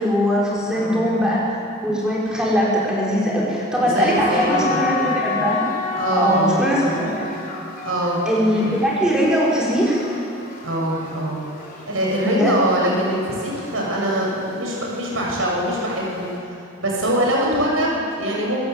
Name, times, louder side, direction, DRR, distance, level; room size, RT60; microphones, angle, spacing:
voice 1, 0.0-1.6 1.8-5.7 6.2-7.1 8.3-10.0 12.2-12.5, equal, 5° right, -7 dB, 5.6 m, -20 dB
voice 2, 0.7-1.1 3.7-4.8 6.0-6.6 6.9-7.1 7.8-8.2 10.6-11.4 11.9-16.3 16.8-18.6, equal, 75° right, -3 dB, 6.8 m, -23 dB
sound 1, 4.1-16.4, left 4 dB, 45° left, 4.5 m, -31 dB
26.5 x 16.0 x 8.3 m, 2.7 s
head